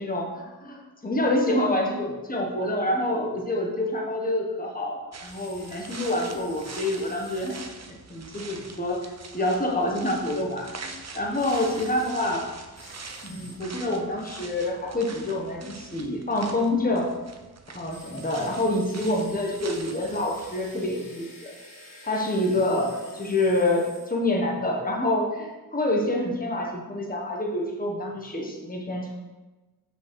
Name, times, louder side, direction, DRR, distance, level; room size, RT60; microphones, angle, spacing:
voice 1, 0.0-7.6 7.9-9.0 9.3-12.4 13.2-17.1 17.7-21.5 22.0-29.1, left 1 dB, 25° left, -1 dB, 1.4 m, -27 dB
sound 1, 5.1-20.6, right 4 dB, 45° right, 0.8 m, -44 dB
sound 2, 5.2-7.6 11.3-12.1 12.7-13.6 17.9-24.2, left 1 dB, 65° left, 2.9 m, -48 dB
6.5 x 5.2 x 6.3 m, 1.2 s
wide cardioid pair, 90°, 35 cm